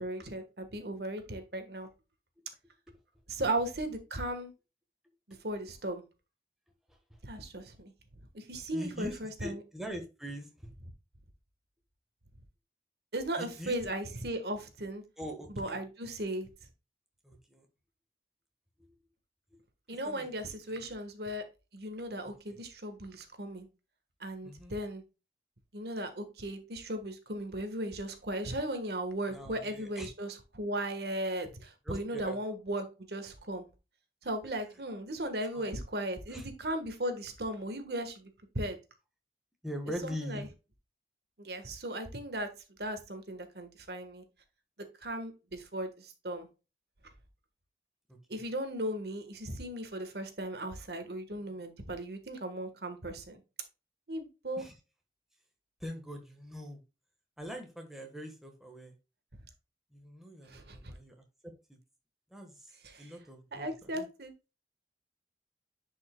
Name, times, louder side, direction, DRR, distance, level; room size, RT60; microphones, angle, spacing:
voice 1, 0.0-1.9 3.3-4.5 5.3-6.0 7.2-7.9 8.3-9.6 13.1-15.0 15.6-16.5 19.9-21.4 21.7-23.7 24.2-25.0 25.7-33.6 34.2-38.3 38.5-38.8 40.0-40.5 41.4-42.5 42.8-44.2 45.0-46.5 48.3-53.4 54.1-54.6 60.5-60.9 62.8-63.1 63.5-64.3, right 1 dB, 65° right, 1.4 m, -37 dB
voice 2, 8.7-10.5 13.4-13.7 15.2-15.8 17.2-17.6 20.0-20.4 20.7-20.9 22.5-22.6 24.4-24.7 29.3-30.1 31.8-32.4 35.5-35.7 36.3-36.5 39.6-40.5 48.3-48.4 54.6-54.7 55.8-56.8 57.4-58.9 59.9-61.1 61.4-61.8 62.3-62.7 63.0-64.1, equal, ahead, 1.3 m, -42 dB
10.5 x 5.4 x 2.2 m
head